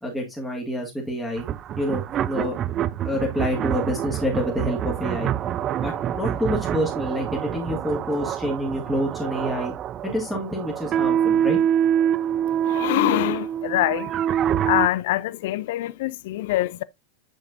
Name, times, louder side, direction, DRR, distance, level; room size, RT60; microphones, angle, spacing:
voice 1, 0.0-1.5 1.8-2.6 3.0-5.3 5.8-9.7 10.0-11.6, equal, 5° left, 1.8 m, -27 dB
sound 1, 1.4-14.9, right 10 dB, 30° right, 0.4 m, -26 dB
voice 2, 12.6-14.1 14.7-16.8, left 16 dB, 50° left, 0.4 m, -24 dB
7.9 x 6.5 x 2.5 m
figure-of-eight pair, 90°, 0 cm